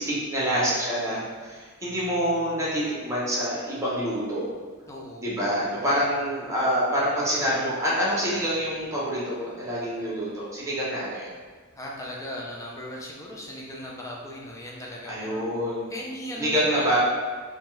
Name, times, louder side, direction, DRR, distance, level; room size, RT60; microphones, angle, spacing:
voice 1, 0.0-4.5 5.2-11.3 15.1-15.9 16.4-17.0, equal, 15° right, -7 dB, 0.8 m, -26 dB
voice 2, 4.9-5.3 11.7-15.4 15.9-17.0, left 1 dB, 15° left, -3 dB, 0.4 m, -38 dB
2.7 x 2.3 x 3.1 m, 1.5 s
head